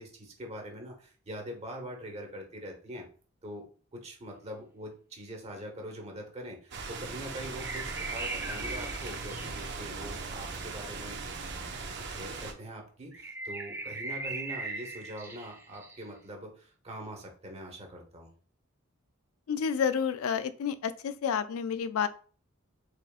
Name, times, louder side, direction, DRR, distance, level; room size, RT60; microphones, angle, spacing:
voice 1, 0.0-3.0 3.4-3.7 3.9-11.2 12.1-18.3, equal, 30° right, 2 dB, 1.1 m, -43 dB
sound 1, 6.7-12.5, right 4 dB, 55° right, 0.6 m, -39 dB
sound 2, 7.3-9.9 13.1-16.0, right 2 dB, 10° right, 0.5 m, -39 dB
voice 2, 19.5-22.1, left 7 dB, 80° left, 13 dB, 0.4 m, -30 dB
4.0 x 3.4 x 2.4 m, 0.41 s
head